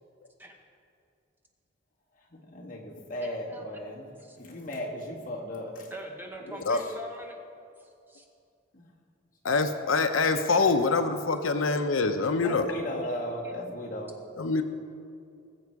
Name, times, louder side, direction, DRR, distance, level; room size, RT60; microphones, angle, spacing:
voice 1, 2.3-5.9 6.4-6.6 8.7-8.8 12.4-14.2, left 1 dB, 40° left, -2 dB, 2.0 m, -36 dB
voice 2, 3.2-3.6 4.2-4.4 5.9-7.4 8.1-8.2, equal, 10° right, 2 dB, 1.0 m, -42 dB
voice 3, 9.4-12.7 14.4-14.6, left 3 dB, 90° left, 7 dB, 0.7 m, -25 dB
20.5 x 7.7 x 4.7 m, 2.4 s
head